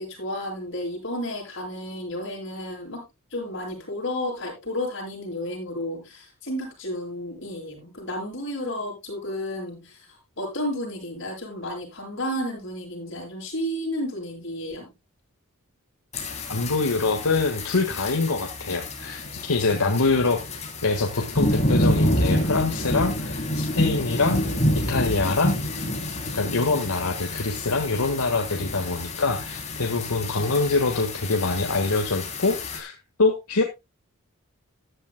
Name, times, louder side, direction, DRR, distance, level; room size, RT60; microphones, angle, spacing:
voice 1, 0.0-14.9, left 1 dB, 55° left, 7.2 m, -32 dB
sound 1, 16.1-32.8, left 1 dB, 30° left, 3.1 m, -28 dB
voice 2, 16.5-20.4 20.8-24.4 24.7-25.6 26.3-33.6, left 3 dB, 90° left, 1.6 m, -24 dB
15.0 x 10.5 x 2.2 m
head